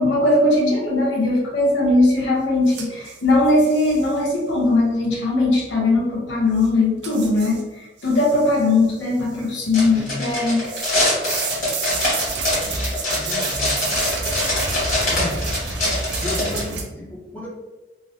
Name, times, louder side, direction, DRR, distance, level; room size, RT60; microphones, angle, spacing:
voice 1, 0.0-10.7, left 2 dB, 90° left, -3 dB, 0.9 m, -19 dB
sound 1, 2.7-4.2 6.6-6.7 7.0-7.6 8.0-8.8 9.2-10.0 10.6-16.8, right 4 dB, 70° right, 0.4 m, -30 dB
sound 2, 9.7-16.6, left 1 dB, 40° left, 1.5 m, -24 dB
voice 2, 9.8-10.2 13.1-13.9 15.1-15.5 16.2-17.5, left 1 dB, 10° left, -5 dB, 0.5 m, -33 dB
3.0 x 2.0 x 2.7 m, 1.1 s
head